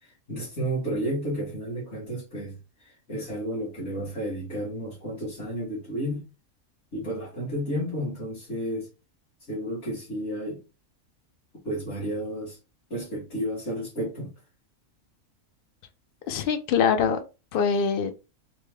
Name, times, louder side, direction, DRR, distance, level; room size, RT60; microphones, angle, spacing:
voice 1, 0.0-6.3 6.9-8.9 9.5-10.6 11.6-12.6 12.9-14.3, equal, 50° left, 1.6 m, -32 dB
voice 2, 16.3-17.2 17.5-18.1, left 6 dB, 70° left, 0.5 m, -23 dB
3.3 x 2.1 x 3.3 m
omnidirectional pair, 1.5 m